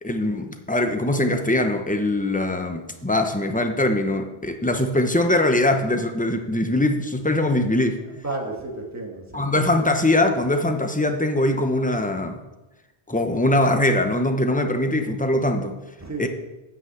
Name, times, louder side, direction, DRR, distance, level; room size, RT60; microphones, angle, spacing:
voice 1, 0.0-8.0 9.3-12.4 13.1-15.8 16.2-16.3, left 1 dB, 10° left, 5 dB, 0.7 m, -22 dB
voice 2, 8.1-9.5 16.0-16.3, right 2 dB, 15° right, 0 dB, 1.7 m, -32 dB
9.6 x 5.8 x 7.8 m, 1.1 s
omnidirectional pair, 1.1 m